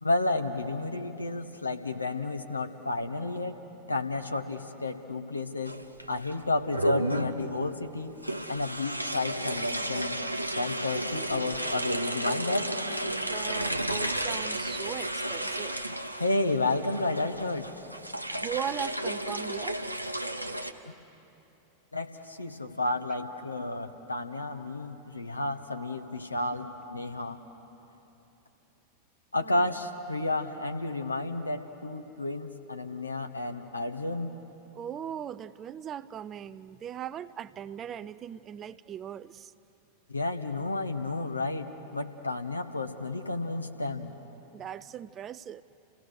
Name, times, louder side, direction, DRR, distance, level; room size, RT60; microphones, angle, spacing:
voice 1, 0.0-3.6 3.9-5.7 6.1-8.2 8.5-12.7 16.1-17.7 20.8-20.9 21.9-27.4 29.3-34.3 40.1-44.2, left 2 dB, 80° left, 1.2 m, -31 dB
sound 1, 5.6-6.3 6.7-7.4 8.2-20.7, right 1 dB, 90° right, 0.8 m, -32 dB
voice 2, 13.1-15.8 18.4-19.9 29.4-29.7 34.7-39.5 44.5-45.6, right 9 dB, 30° right, 0.5 m, -39 dB
30.0 x 17.0 x 6.5 m
figure-of-eight pair, 90°, 0 cm